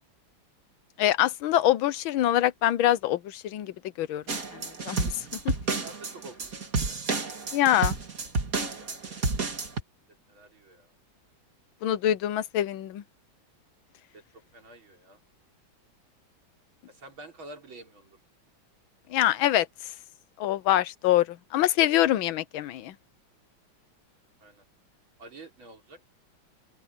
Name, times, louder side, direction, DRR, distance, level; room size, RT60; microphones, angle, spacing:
voice 1, 1.0-4.2 4.5-5.1 5.4-5.5 7.5-8.0 11.8-13.0 19.1-19.7 20.4-22.9, left 13 dB, 80° left, 1.6 m, -25 dB
sound 1, 4.3-9.8, right 3 dB, 45° right, 2.7 m, -30 dB
voice 2, 5.8-7.0 8.7-9.3 10.0-10.9 14.1-15.2 16.9-18.2 24.4-24.6 25.2-26.0, right 2 dB, 80° right, 5.1 m, -49 dB
open air
omnidirectional pair, 2.2 m